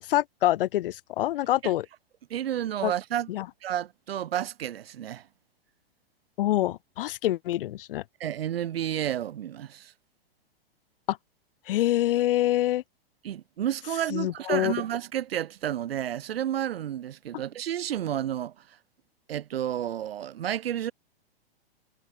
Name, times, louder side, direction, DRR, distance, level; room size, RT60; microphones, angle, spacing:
voice 1, 0.0-1.8 2.8-2.9 3.3-3.4 6.4-8.0 11.1-11.2 11.7-12.8 14.1-14.7, left 14 dB, 60° left, 1.7 m, -26 dB
voice 2, 2.3-3.3 3.6-5.3 8.2-9.9 13.2-18.8 19.3-20.9, right 11 dB, 70° right, 8.0 m, -31 dB
hypercardioid pair, 130°, 31 cm